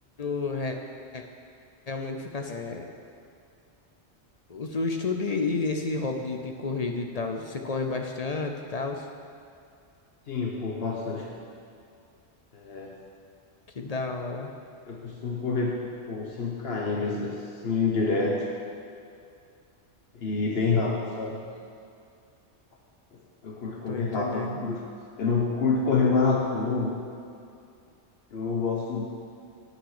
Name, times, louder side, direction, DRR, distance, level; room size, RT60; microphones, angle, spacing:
voice 1, 0.2-0.8 1.1-1.2 1.9-2.9 4.5-9.1 13.8-14.5 23.9-24.6, left 3 dB, 45° left, 4 dB, 0.6 m, -31 dB
voice 2, 10.3-11.4 12.5-12.9 14.9-18.4 20.1-21.4 23.4-24.8 25.2-27.0 28.3-29.1, left 4 dB, 60° left, -1 dB, 1.1 m, -27 dB
9.3 x 8.9 x 4.9 m, 2.5 s
omnidirectional pair, 1.2 m